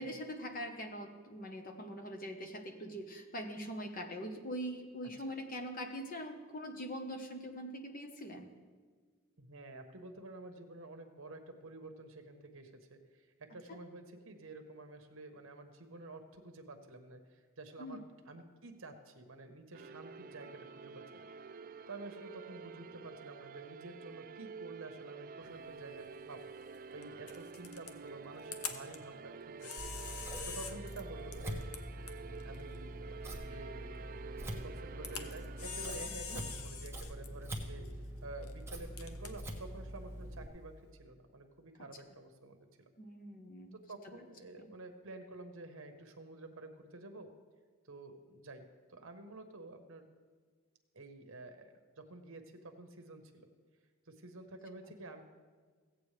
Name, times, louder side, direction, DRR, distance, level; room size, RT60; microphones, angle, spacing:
voice 1, 0.0-8.5 17.8-18.0 36.1-36.4 43.0-43.7, equal, 40° left, 5 dB, 1.1 m, -43 dB
voice 2, 9.4-21.2 21.9-29.8 30.5-31.6 32.4-34.1 34.6-37.9 38.2-42.9 43.7-47.3 47.8-50.1 50.9-53.5 54.1-55.2, right 2 dB, 65° right, 6 dB, 1.1 m, -50 dB
sound 1, 19.7-36.1, right 5 dB, 40° right, 0.3 m, -49 dB
Camera, 25.4-40.9, left 6 dB, 90° left, 0.9 m, -48 dB
Scissors, 29.8-40.5, equal, 10° right, 1.1 m, -44 dB
16.5 x 8.1 x 3.3 m, 1.5 s
head